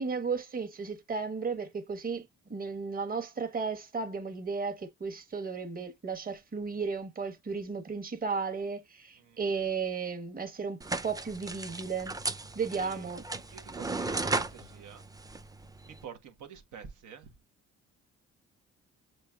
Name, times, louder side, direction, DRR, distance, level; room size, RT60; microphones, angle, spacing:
voice 1, 0.0-2.2 2.5-12.1 12.5-13.2, right 5 dB, 30° right, 1.3 m, -34 dB
sound 1, 10.8-16.0, right 3 dB, 10° right, 0.5 m, -36 dB
voice 2, 12.7-13.1 13.5-15.1 15.9-17.3, right 7 dB, 85° right, 1.2 m, -48 dB
6.7 x 3.1 x 2.4 m
cardioid pair, 90°, 30 cm